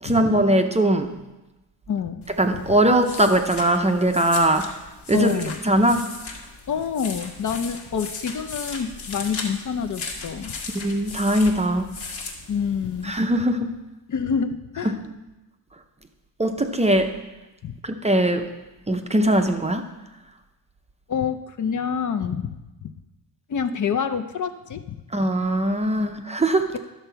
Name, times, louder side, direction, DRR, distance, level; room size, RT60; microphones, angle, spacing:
voice 1, 0.0-1.1 2.4-4.7 5.1-5.3 5.6-6.1 10.7-11.9 13.0-13.7 14.9-15.0 16.4-17.1 17.8-18.5 18.9-19.9 25.1-26.8, right 1 dB, 15° right, 5 dB, 0.5 m, -20 dB
voice 2, 1.9-2.3 5.1-5.6 6.7-10.5 12.5-13.2 14.1-15.0 17.6-17.7 21.1-22.9 23.5-24.8 26.0-26.2, left 7 dB, 50° left, 8 dB, 0.5 m, -27 dB
sound 1, 2.2-13.2, left 4 dB, 75° left, 1.6 m, -37 dB
11.5 x 6.8 x 4.5 m, 1.0 s
wide cardioid pair, 150°, 40 cm